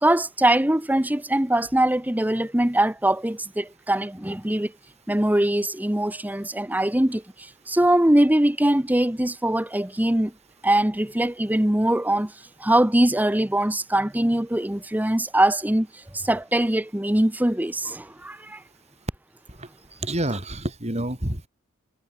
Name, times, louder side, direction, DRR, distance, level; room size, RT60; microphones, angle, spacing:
voice 1, 0.0-4.7 5.1-10.3 10.6-12.3 12.6-15.9 16.1-18.6, right 1 dB, 10° right, 1.0 m, -22 dB
voice 2, 20.0-21.5, right 1 dB, 30° right, 4.4 m, -28 dB
head